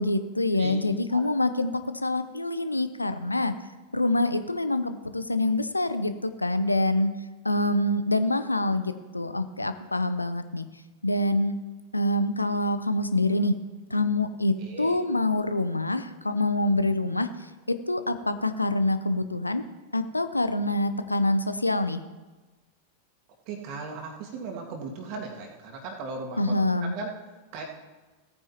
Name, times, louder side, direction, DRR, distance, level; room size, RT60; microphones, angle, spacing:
voice 1, 0.0-3.5 3.9-7.2 7.4-10.7 11.0-11.6 11.9-13.6 13.9-17.3 17.7-19.7 19.9-22.0 26.4-26.9, left 2 dB, 85° left, 11 dB, 0.6 m, -26 dB
voice 2, 14.6-15.0 23.5-27.1 27.5-27.6, right 4 dB, 45° right, 1 dB, 2.1 m, -37 dB
17.0 x 9.1 x 3.0 m, 1.2 s
figure-of-eight pair, 90°, 0 cm